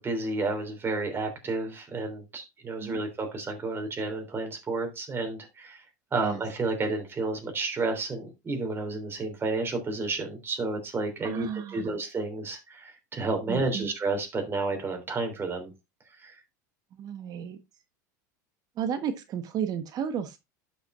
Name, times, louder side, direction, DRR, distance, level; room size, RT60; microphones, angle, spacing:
voice 1, 0.0-5.8 6.1-15.7 16.2-16.3, right 3 dB, 25° right, 3.3 m, -31 dB
voice 2, 11.2-11.9 13.5-13.9 17.0-17.6 18.8-20.4, right 8 dB, 45° right, 1.2 m, -33 dB
12.0 x 6.0 x 2.5 m
hypercardioid pair, 105°, 10 cm